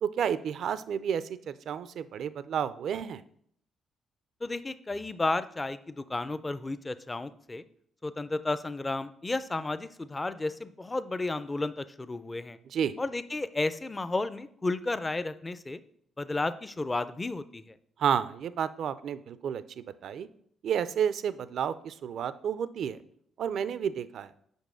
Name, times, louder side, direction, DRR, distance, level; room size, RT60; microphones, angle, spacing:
voice 1, 0.0-3.2 12.7-12.9 18.0-20.3 20.6-23.0 23.4-24.3, right 8 dB, 65° right, 15 dB, 0.4 m, -31 dB
voice 2, 4.4-7.6 8.0-12.6 13.0-15.8 16.2-17.8, left 2 dB, 20° left, 14 dB, 0.4 m, -32 dB
5.3 x 4.8 x 6.2 m, 0.66 s
cardioid pair, 90°, 0 cm